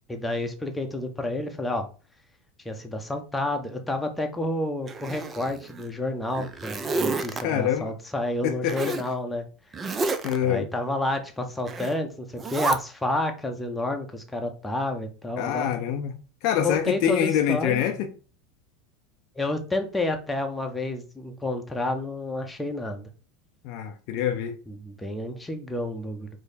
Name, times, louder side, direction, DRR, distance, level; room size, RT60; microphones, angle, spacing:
voice 1, 0.1-1.9 2.6-9.4 10.4-15.7 16.6-17.8 19.4-23.1 24.7-26.3, left 1 dB, 5° left, 0.8 m, -30 dB
Zipper (clothing), 4.9-5.9 6.3-7.4 8.7-9.1 9.7-10.4 11.7-12.0 12.4-12.8, right 3 dB, 25° right, 0.4 m, -29 dB
voice 2, 7.4-7.9 8.4-9.0 10.2-10.7 15.4-18.1 23.6-24.5, left 9 dB, 50° left, 0.5 m, -25 dB
4.8 x 2.1 x 4.1 m
figure-of-eight pair, 80°, 0 cm